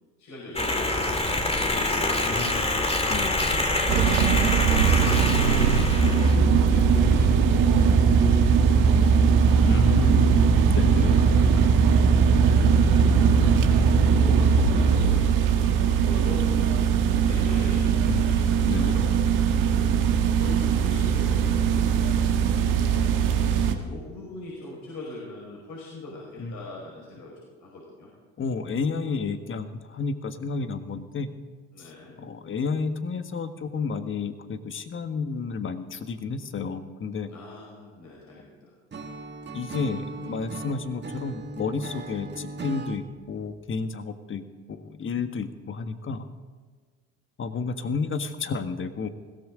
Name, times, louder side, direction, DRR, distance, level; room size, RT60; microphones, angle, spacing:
voice 1, 0.2-2.6 3.1-6.1 6.6-9.0 9.4-10.4 10.9-15.6 15.9-16.8 17.2-19.8 20.4-28.1 31.7-32.1 37.3-39.1, left 2 dB, 60° left, -4 dB, 5.4 m, -42 dB
sound 1, 0.6-6.3, left 2 dB, 20° left, 2.4 m, -25 dB
voice 2, 2.3-2.7 3.1-3.3 6.3-6.6 9.6-10.4 10.7-11.1 18.0-18.3 18.6-19.0 26.4-26.6 28.4-31.3 31.8-31.9 32.2-37.3 39.5-44.4 44.7-46.3 47.4-49.1, left 4 dB, 40° left, 9 dB, 1.5 m, -31 dB
sound 2, 3.9-23.7, right 6 dB, 70° right, 1.7 m, -20 dB
Acoustic guitar / Strum, 38.9-43.0, right 3 dB, 35° right, 2.1 m, -38 dB
21.0 x 16.5 x 3.8 m, 1.4 s
hypercardioid pair, 65°, 33 cm